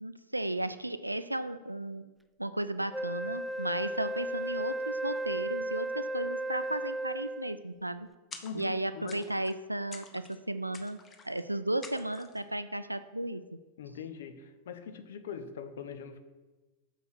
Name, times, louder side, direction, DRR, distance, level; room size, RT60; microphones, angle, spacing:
voice 1, 0.0-2.1 2.4-8.1 8.5-11.0 11.2-13.4, right 1 dB, 85° right, 12 dB, 0.4 m, -34 dB
Wind instrument woodwind instrument, 2.9-7.7, right 2 dB, 5° right, 0.4 m, -35 dB
sound 1, 8.3-8.8 9.1-9.6 9.9-10.4 10.7-11.4 11.8-12.4, left 4 dB, 20° left, 0.8 m, -48 dB
voice 2, 8.4-9.3 13.8-16.2, left 6 dB, 60° left, 10 dB, 0.7 m, -42 dB
6.4 x 5.4 x 6.0 m, 1.2 s
figure-of-eight pair, 90°, 0 cm